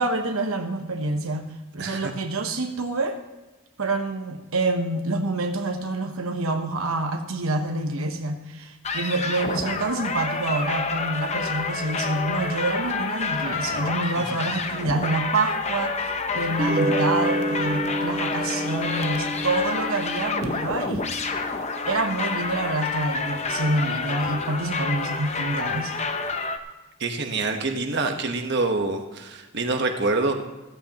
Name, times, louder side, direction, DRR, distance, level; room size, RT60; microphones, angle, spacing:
voice 1, 0.0-1.5 1.7-3.2 3.8-21.1 21.9-25.9, right 2 dB, 75° right, 5 dB, 1.1 m, -27 dB
voice 2, 1.8-2.1 14.2-14.4 27.0-30.3, right 3 dB, 50° right, 4 dB, 1.3 m, -26 dB
sound 1, 8.8-26.6, left 4 dB, 30° left, 0.8 m, -29 dB
sound 2, 16.5-23.0, right 1 dB, 35° right, 1.7 m, -30 dB
15.5 x 14.5 x 3.0 m, 1.2 s
head